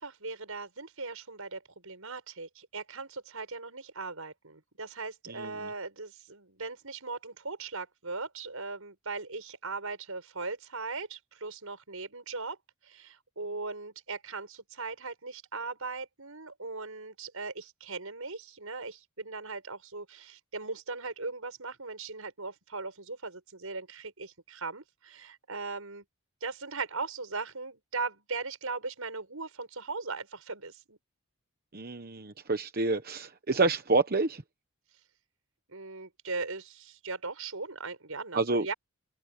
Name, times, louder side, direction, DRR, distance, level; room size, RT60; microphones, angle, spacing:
voice 1, 0.0-12.6 12.8-26.0 26.4-31.0 35.7-38.7, right 4 dB, 80° right, 5.4 m, -39 dB
voice 2, 31.7-34.4 38.3-38.7, right 3 dB, 45° right, 1.0 m, -28 dB
open air
head